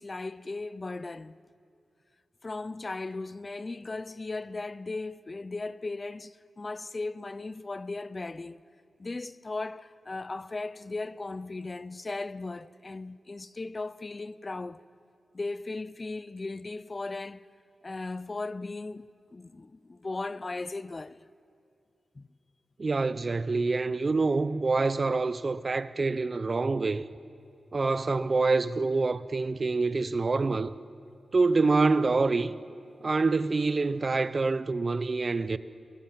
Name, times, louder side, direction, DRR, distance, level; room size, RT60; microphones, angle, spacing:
voice 1, 0.0-1.4 2.4-8.6 9.0-14.8 15.3-17.4 17.8-19.0 19.3-21.2 22.2-22.3, left 3 dB, 30° left, 0.5 m, -37 dB
voice 2, 22.8-27.0 27.7-30.7 31.3-32.5 33.0-35.6, right 3 dB, 40° right, 0.7 m, -26 dB
27.0 x 22.0 x 7.5 m
cardioid pair, 85°, 0 cm